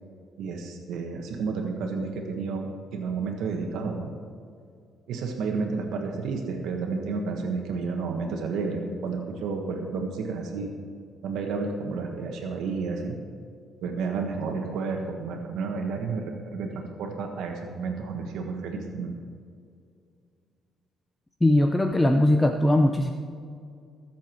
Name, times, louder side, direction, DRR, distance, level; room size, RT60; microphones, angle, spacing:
voice 1, 0.4-4.1 5.1-10.7 11.2-13.2 13.8-19.1, right 4 dB, 85° right, 2 dB, 1.5 m, -31 dB
voice 2, 21.4-23.1, left 1 dB, 10° left, 5 dB, 0.6 m, -20 dB
21.0 x 7.3 x 4.6 m, 2.3 s
cardioid pair, 140°, 0 cm